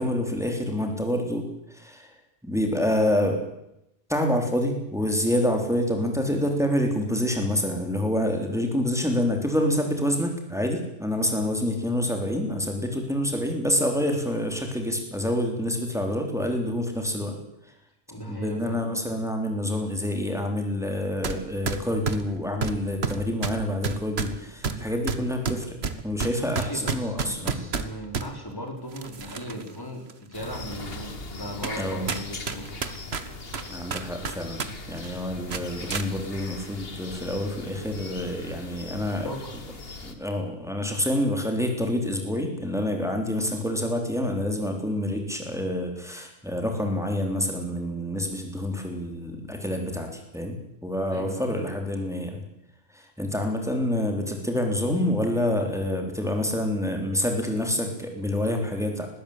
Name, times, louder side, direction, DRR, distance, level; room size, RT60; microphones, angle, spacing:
voice 1, 0.0-1.4 1.7-2.1 2.4-3.4 4.1-17.4 18.3-25.8 26.0-27.6 31.8-32.1 33.7-34.6 34.9-39.3 40.0-52.4 52.9-59.1, left 1 dB, 5° right, 3 dB, 3.7 m, -27 dB
voice 2, 18.1-18.8 26.4-32.8 39.2-39.6 51.1-51.5, equal, 20° left, 2 dB, 4.6 m, -38 dB
sound 1, 21.2-21.4 21.7-28.3 28.9-29.7 30.1-30.2 30.9-31.0 31.6-31.8 32.1-34.7 35.0-35.1 35.5-36.1, right 5 dB, 75° right, 1.7 m, -30 dB
sound 2, 30.3-40.1, left 3 dB, 65° left, 2.1 m, -40 dB
20.0 x 16.0 x 8.7 m, 0.83 s
omnidirectional pair, 1.1 m